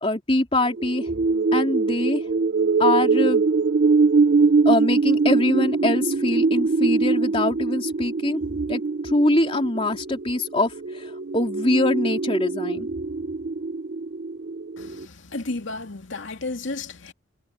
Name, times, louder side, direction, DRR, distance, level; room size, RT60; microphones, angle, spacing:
voice 1, 0.0-1.0 1.5-2.2 2.8-3.4 4.6-8.4 8.7-11.0 11.3-12.9, left 1 dB, 30° left, 3.3 m, -23 dB
sound 1, 0.7-15.1, right 4 dB, 55° right, 0.5 m, -23 dB
voice 2, 14.8-17.1, left 3 dB, 80° left, 2.3 m, -33 dB
head